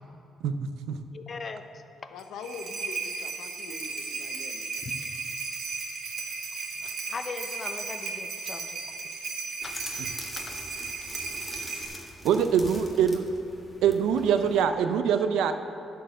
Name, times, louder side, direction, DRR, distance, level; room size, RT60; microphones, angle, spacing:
voice 1, 0.4-1.0 12.2-13.3 13.8-15.5, right 7 dB, 90° right, 9 dB, 0.5 m, -24 dB
voice 2, 1.1-2.1 4.8-4.9 6.8-8.8 9.6-10.0 10.4-10.6, left 4 dB, 40° left, 8 dB, 0.7 m, -40 dB
voice 3, 2.1-4.9, left 5 dB, 85° left, 7 dB, 0.7 m, -43 dB
sound 1, 2.2-11.9, right 4 dB, 60° right, 1.3 m, -35 dB
sound 2, 9.6-14.6, left 1 dB, 10° left, 1.5 m, -43 dB
11.0 x 4.6 x 7.5 m, 2.8 s
cardioid pair, 90°, 0 cm